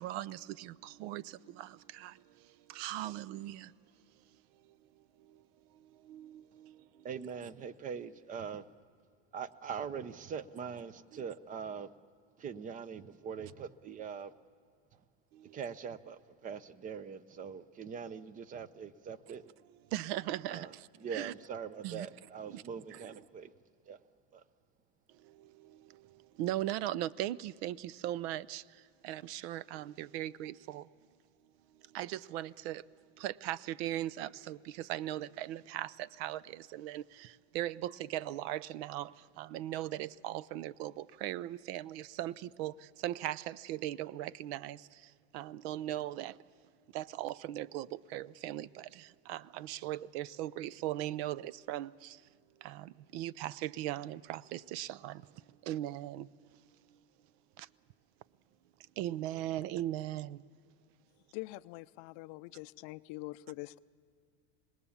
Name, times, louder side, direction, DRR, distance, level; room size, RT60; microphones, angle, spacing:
voice 1, 0.0-3.7 4.7-4.8 5.2-5.4 5.7-7.1 11.1-11.2 15.3-15.6 19.3-19.5 19.9-21.3 21.8-22.1 22.5-22.6 22.9-23.0 25.1-30.9 31.8-46.4 46.9-52.2 52.6-55.3 55.6-56.3 57.6-57.7 59.0-60.4, right 13 dB, 65° right, 0.6 m, -39 dB
voice 2, 7.0-8.7 9.3-11.9 12.4-14.3 15.5-19.4 20.5-20.7 21.0-23.5 23.9-24.0 24.3-24.4, right 6 dB, 25° right, 0.6 m, -42 dB
voice 3, 61.3-63.8, left 21 dB, 50° left, 0.5 m, -44 dB
26.0 x 20.0 x 7.1 m
supercardioid pair, 145°, 34 cm